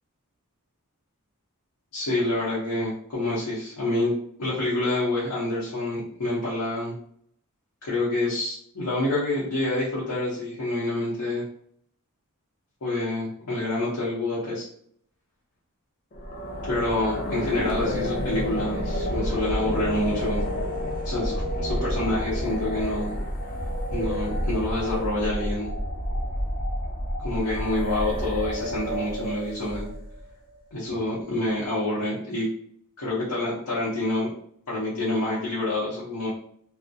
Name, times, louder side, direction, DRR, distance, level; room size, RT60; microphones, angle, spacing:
voice 1, 1.9-4.1 4.4-6.9 7.8-11.4 12.8-14.7 16.7-20.5 21.0-23.1 23.9-25.7 27.2-29.9 30.7-32.5 33.0-34.3 34.7-36.3, left 2 dB, 85° left, -7 dB, 0.7 m, -27 dB
sound 1, 16.1-30.2, equal, 40° left, 0.5 m, -29 dB
2.3 x 2.0 x 2.6 m, 0.66 s
head